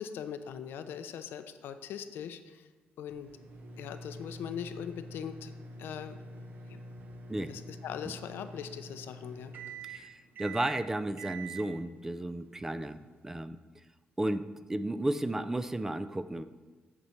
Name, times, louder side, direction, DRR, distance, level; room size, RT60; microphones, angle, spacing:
voice 1, 0.0-2.6 3.0-3.3 3.8-5.5 5.8-6.2 6.7-6.8 7.5-9.5, left 8 dB, 90° left, 10 dB, 0.6 m, -40 dB
sound 1, 3.1-13.4, right 2 dB, 55° right, 1.0 m, -46 dB
voice 2, 10.4-13.0 13.2-13.6 14.2-16.4, right 1 dB, 10° right, 12 dB, 0.3 m, -33 dB
8.6 x 6.7 x 4.4 m, 1.3 s
cardioid pair, 135°, 4 cm